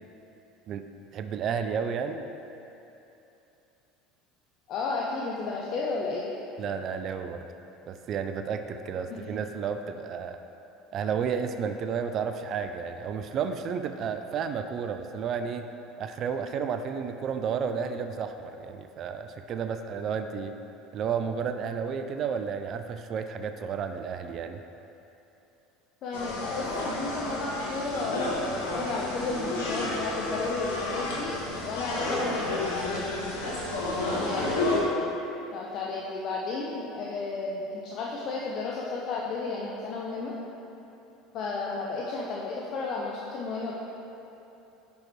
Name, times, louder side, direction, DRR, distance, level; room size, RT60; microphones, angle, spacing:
voice 1, 1.1-2.3 6.6-7.5 7.9-10.4 10.9-15.7 16.0-20.5 20.9-24.6 34.4-34.5, right 6 dB, 50° right, 8 dB, 0.4 m, -32 dB
voice 2, 4.7-6.2 26.0-33.4 34.1-34.8 35.5-40.3 41.3-43.7, left 3 dB, 55° left, -3 dB, 0.7 m, -33 dB
sound 1, 26.1-34.8, left 2 dB, 85° left, 1.2 m, -31 dB
5.8 x 5.2 x 4.6 m, 2.9 s
hypercardioid pair, 85°, 0 cm